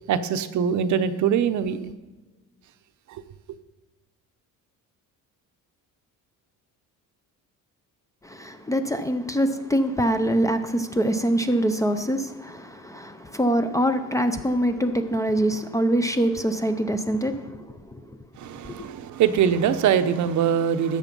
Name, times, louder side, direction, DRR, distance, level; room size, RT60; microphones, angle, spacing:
voice 1, 0.1-1.8 18.4-21.0, right 8 dB, 55° right, 0.8 m, -22 dB
voice 2, 8.2-18.0 18.7-18.8, right 1 dB, 10° left, 0.5 m, -24 dB
13.5 x 8.1 x 5.3 m
cardioid pair, 145°, 34 cm